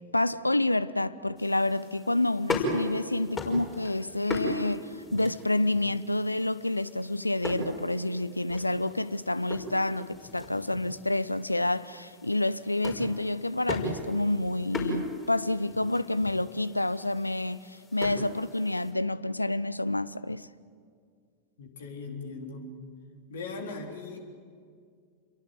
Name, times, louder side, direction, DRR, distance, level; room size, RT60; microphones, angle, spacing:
voice 1, 0.1-20.5, left 2 dB, 85° left, 0.6 m, -28 dB
sound 1, 1.4-18.9, left 2 dB, 25° left, 5.7 m, -38 dB
voice 2, 21.6-22.7 23.3-24.2, left 3 dB, 65° left, 3.8 m, -39 dB
28.5 x 22.5 x 7.8 m
figure-of-eight pair, 90°, 0 cm